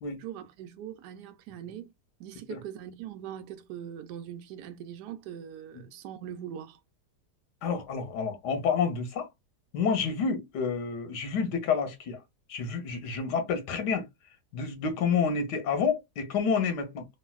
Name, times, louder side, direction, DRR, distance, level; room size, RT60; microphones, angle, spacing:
voice 1, 0.2-1.9 2.2-6.8, right 10 dB, 80° right, 1.2 m, -41 dB
voice 2, 7.6-9.3 9.7-12.2 12.5-14.0 14.5-17.1, left 5 dB, 85° left, 1.4 m, -29 dB
3.1 x 2.6 x 2.3 m
omnidirectional pair, 1.8 m